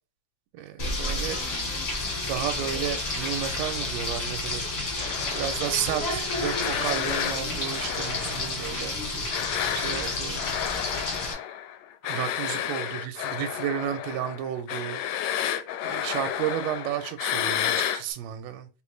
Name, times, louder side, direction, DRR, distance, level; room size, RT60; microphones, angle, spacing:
voice 1, 0.5-1.4 2.2-4.6 5.3-8.9 9.7-10.5 12.1-15.6 15.8-18.7, right 10 dB, 80° right, 1.7 m, -32 dB
Frying (food), 0.8-11.3, left 2 dB, 40° left, 1.5 m, -30 dB
sound 1, 5.0-9.0 9.3-18.0, left 10 dB, 80° left, 1.7 m, -31 dB
3.8 x 3.7 x 3.1 m
omnidirectional pair, 3.3 m